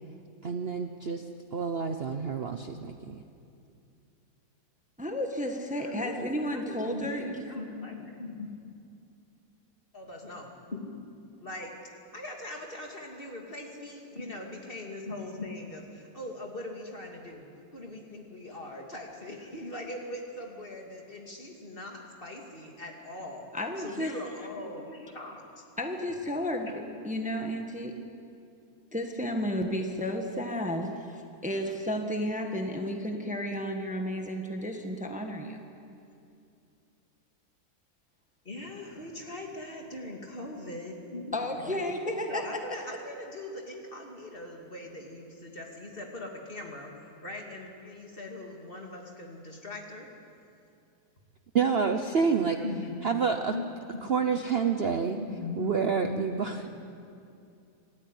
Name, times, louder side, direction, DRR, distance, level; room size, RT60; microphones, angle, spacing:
voice 1, 0.4-1.2 1.5-3.2 51.5-52.6 53.0-53.5 54.1-55.2 55.6-56.6, right 6 dB, 45° right, 6 dB, 0.9 m, -28 dB
voice 2, 5.0-7.5 23.5-24.1 25.8-27.9 28.9-35.6 41.3-42.4, equal, 5° right, 3 dB, 1.5 m, -32 dB
voice 3, 5.8-8.5 9.9-10.9 11.4-11.7 12.1-17.5 17.7-23.5 23.8-25.6 38.4-41.8 42.3-50.1 51.7-53.0 53.5-53.6 53.9-54.0 55.2-55.7 56.0-56.7, left 2 dB, 35° left, 1 dB, 2.7 m, -40 dB
26.5 x 13.5 x 10.0 m, 2.6 s
omnidirectional pair, 1.7 m